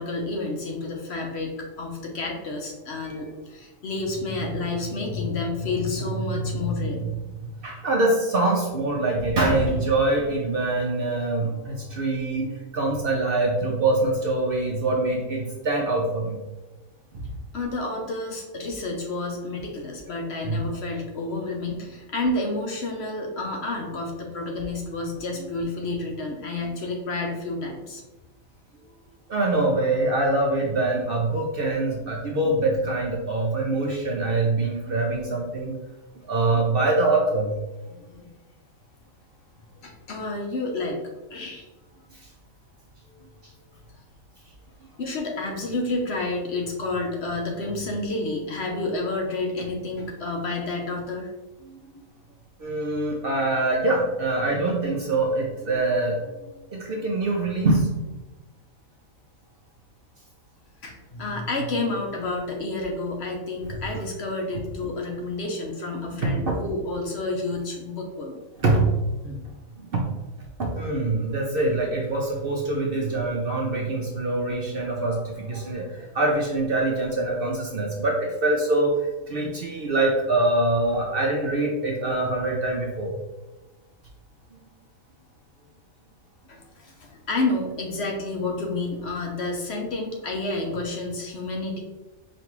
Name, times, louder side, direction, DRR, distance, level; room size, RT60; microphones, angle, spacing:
voice 1, 0.0-7.5 17.5-28.0 37.9-38.3 39.8-41.0 41.3-41.6 45.0-51.3 60.8-68.4 69.2-69.4 86.5-91.8, left 2 dB, 60° left, 1 dB, 0.9 m, -30 dB
voice 2, 7.6-16.4 17.1-17.3 20.4-20.7 29.3-35.8 36.2-37.5 51.7-51.8 52.6-57.9 66.2-66.6 68.6-68.9 69.8-70.1 70.6-83.1, right 2 dB, 60° right, -1 dB, 0.6 m, -24 dB
5.1 x 2.5 x 3.0 m, 1.1 s
omnidirectional pair, 1.4 m